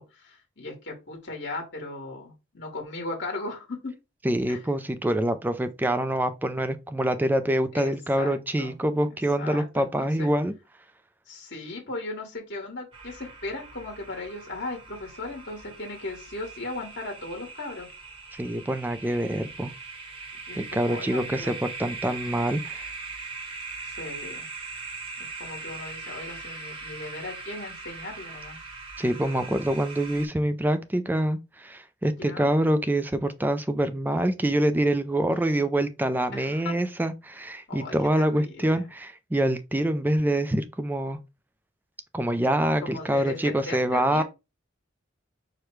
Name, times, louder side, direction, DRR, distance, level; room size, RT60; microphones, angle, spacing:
voice 1, 0.0-3.9 4.5-4.6 5.8-6.1 7.7-8.8 9.1-10.3 11.3-17.9 20.5-21.5 23.8-24.5 25.2-28.6 32.1-32.5 35.3-35.7 36.3-36.7 37.7-38.9 42.8-44.2, left 2 dB, 55° left, 1.4 m, -37 dB
voice 2, 4.2-10.5 18.3-19.7 20.5-22.8 29.0-41.2 42.1-44.2, right 1 dB, 10° right, 0.3 m, -25 dB
sound 1, 12.9-30.3, right 4 dB, 25° right, 0.9 m, -40 dB
4.8 x 2.2 x 4.5 m
head